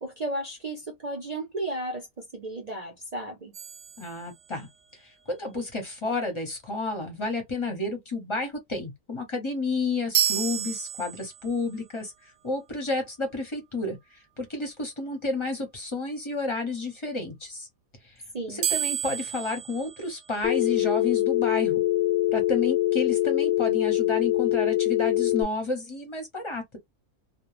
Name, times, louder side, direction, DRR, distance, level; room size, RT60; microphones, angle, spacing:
voice 1, 0.0-3.5 18.3-18.6, right 1 dB, 55° right, 0.4 m, -34 dB
sound 1, 3.5-4.8 10.1-11.6 18.6-20.8, right 10 dB, 70° right, 0.9 m, -31 dB
voice 2, 4.0-4.7 5.3-17.7 18.0-18.1 18.5-21.8 22.3-26.8, left 3 dB, 25° left, 0.7 m, -31 dB
Telephone, 20.4-25.4, left 15 dB, 65° left, 0.8 m, -24 dB
2.3 x 2.2 x 3.1 m
omnidirectional pair, 1.6 m